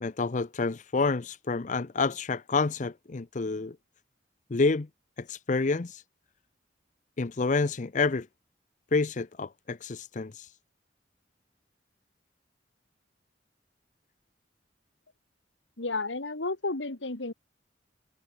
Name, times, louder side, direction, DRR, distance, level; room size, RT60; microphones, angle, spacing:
voice 1, 0.0-3.8 4.5-4.9 5.3-6.0 7.2-8.3 8.9-10.5, left 3 dB, 40° left, 0.6 m, -28 dB
voice 2, 15.8-17.3, left 3 dB, 90° left, 2.0 m, -32 dB
head